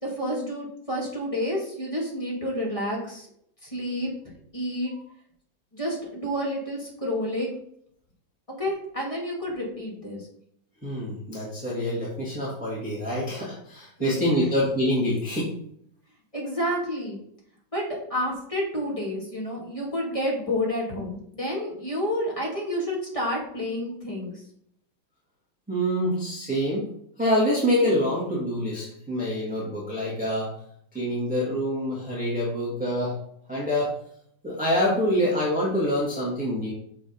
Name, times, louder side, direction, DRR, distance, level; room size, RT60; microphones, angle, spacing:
voice 1, 0.0-3.3 3.6-4.1 4.5-4.9 5.7-7.5 8.5-10.3 14.0-14.2 16.3-17.2 17.7-24.4, equal, 15° left, -5 dB, 2.6 m, -29 dB
voice 2, 10.8-15.5 25.7-26.9 27.2-30.5 30.9-33.2 33.5-33.9 34.4-36.7, equal, 5° right, -7 dB, 1.8 m, -26 dB
6.9 x 4.4 x 5.4 m, 0.70 s
omnidirectional pair, 2.1 m